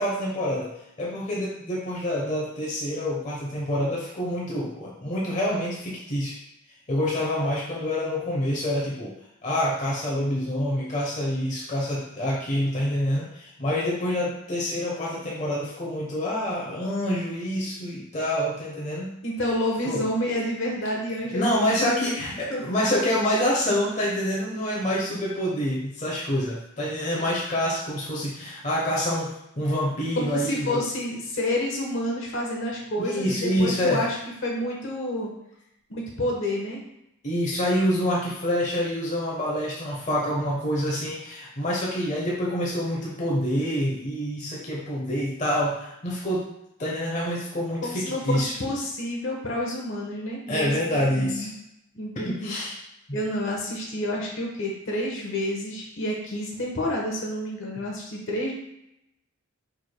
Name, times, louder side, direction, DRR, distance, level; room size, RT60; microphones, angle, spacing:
voice 1, 0.0-6.4 6.9-9.1 9.4-19.2 19.9-20.0 21.3-30.8 33.0-34.0 37.2-46.5 46.8-48.5 50.5-51.5 52.2-52.8 53.1-53.2, equal, 35° left, -5 dB, 0.9 m, -27 dB
voice 2, 19.2-21.4 22.1-22.2 22.5-22.6 30.1-34.2 34.4-35.3 35.9-36.8 47.8-50.7 51.1-51.5 51.9-52.5 53.1-58.5, left 1 dB, 60° left, -1 dB, 1.2 m, -29 dB
4.8 x 4.8 x 2.2 m, 0.82 s
head